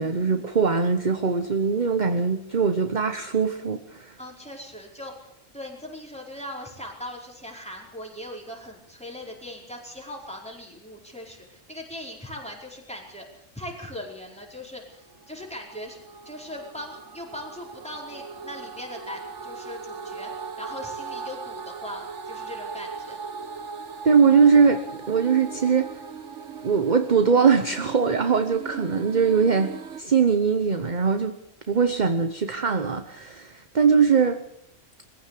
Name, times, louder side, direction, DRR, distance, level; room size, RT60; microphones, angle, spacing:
voice 1, 0.0-4.1 24.0-25.9 26.6-31.3 31.7-34.4, right 5 dB, 40° right, 9 dB, 1.1 m, -21 dB
voice 2, 4.2-16.0 16.2-23.2, left 1 dB, 5° left, -1 dB, 4.8 m, -40 dB
sound 1, 14.9-30.0, right 5 dB, 65° right, 1.6 m, -39 dB
22.0 x 15.5 x 8.5 m, 0.77 s
omnidirectional pair, 1.3 m